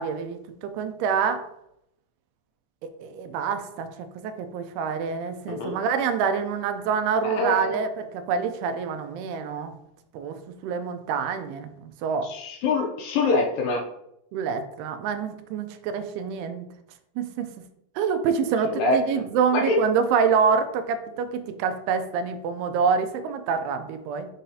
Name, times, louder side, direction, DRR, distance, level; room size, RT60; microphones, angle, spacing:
voice 1, 0.0-1.5 3.0-9.7 10.1-10.4 10.6-12.3 14.3-16.6 17.2-17.5 18.0-24.3, right 6 dB, 85° right, 9 dB, 2.7 m, -26 dB
voice 2, 5.5-5.8 7.2-7.8 12.2-13.8 18.6-19.2 19.5-19.8, left 3 dB, 75° left, 1 dB, 2.1 m, -25 dB
6.2 x 5.6 x 2.8 m, 0.80 s
omnidirectional pair, 4.5 m